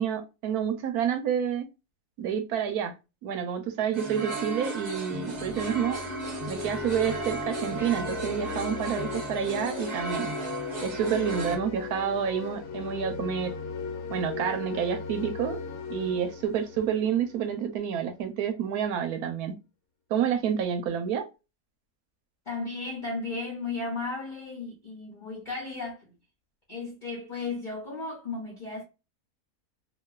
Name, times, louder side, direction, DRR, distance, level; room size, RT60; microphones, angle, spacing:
voice 1, 0.0-1.7 2.2-2.9 3.2-6.0 6.5-10.3 10.8-13.5 14.1-15.6 15.9-19.5 20.1-21.3, right 8 dB, 90° right, 1.2 m, -29 dB
sound 1, 3.9-11.6, right 2 dB, 30° right, 1.0 m, -35 dB
sound 2, 5.1-17.8, left 5 dB, 75° left, 1.1 m, -37 dB
voice 2, 22.5-26.1 26.7-28.8, left 3 dB, 40° left, 0.8 m, -35 dB
2.9 x 2.3 x 2.3 m
omnidirectional pair, 1.6 m